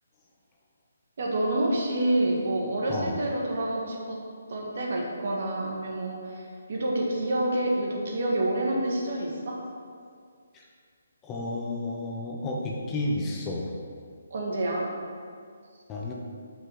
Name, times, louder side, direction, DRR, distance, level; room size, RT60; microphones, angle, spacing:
voice 1, 1.2-4.2 4.5-9.6 14.3-14.9, right 1 dB, 60° right, -2 dB, 1.7 m, -28 dB
voice 2, 11.2-13.7 15.9-16.1, left 2 dB, 15° left, -2 dB, 0.9 m, -31 dB
5.6 x 5.2 x 6.1 m, 2.1 s
hypercardioid pair, 155°, 0 cm